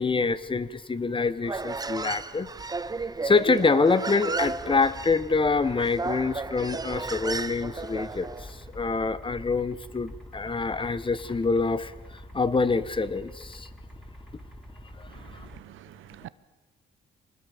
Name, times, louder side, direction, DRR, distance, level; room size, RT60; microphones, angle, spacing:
voice 1, 0.0-2.5 3.2-8.5 8.7-11.9 12.3-13.7 15.0-15.1 15.3-15.5, left 4 dB, 25° left, 1.2 m, -26 dB
Human voice, 1.4-8.5, right 3 dB, 20° right, 0.7 m, -33 dB
sound 1, 4.4-15.6, equal, ahead, 4.6 m, -46 dB
voice 2, 15.5-16.3, right 14 dB, 85° right, 1.0 m, -46 dB
24.5 x 19.5 x 7.2 m
cardioid pair, 90°, 20 cm